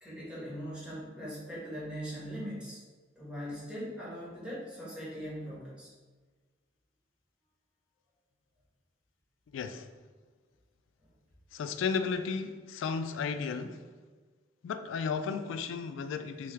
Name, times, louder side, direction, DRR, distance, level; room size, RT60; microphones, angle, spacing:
voice 1, 0.0-2.8 3.1-5.9, equal, 5° right, -9 dB, 1.3 m, -40 dB
voice 2, 9.5-9.9 11.5-13.8 14.6-16.5, left 5 dB, 80° left, 9 dB, 0.3 m, -34 dB
3.5 x 3.3 x 3.2 m, 1.4 s
head